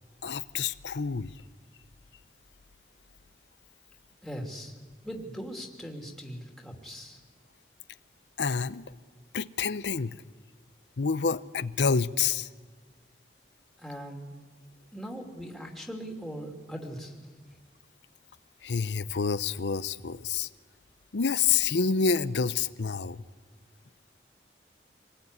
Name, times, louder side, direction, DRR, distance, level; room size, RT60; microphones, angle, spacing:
voice 1, 0.2-1.3 8.4-8.8 9.3-10.2 11.0-12.5 18.6-20.5 21.1-23.2, left 5 dB, 85° left, 14 dB, 0.7 m, -28 dB
voice 2, 4.2-4.7 5.0-7.2 13.8-14.3 14.9-17.3, equal, ahead, 1 dB, 2.9 m, -40 dB
25.5 x 19.0 x 9.7 m, 1.5 s
head